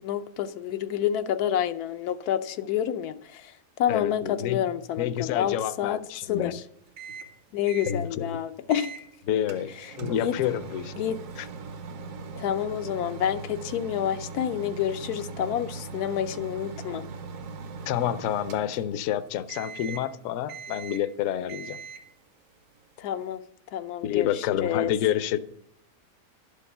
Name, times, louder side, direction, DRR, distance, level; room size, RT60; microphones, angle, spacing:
voice 1, 0.0-6.0 6.3-6.6 7.5-8.9 9.8-10.4 11.0-11.2 12.4-17.0 23.0-23.4 23.7-24.9, left 10 dB, 90° left, 10 dB, 1.1 m, -29 dB
voice 2, 3.9-4.6 5.0-6.5 7.8-8.3 9.3-9.7 10.0-10.9 11.4-11.5 17.9-21.8 24.0-25.4, left 11 dB, 70° left, 14 dB, 0.8 m, -28 dB
Microwave oven, 7.0-7.4 7.7-8.0 8.7-9.1 9.5-19.1 19.5-20.1 20.5-21.1 21.5-22.1, right 4 dB, 65° right, 1.2 m, -40 dB
11.5 x 5.3 x 6.6 m, 0.74 s
omnidirectional pair, 1.6 m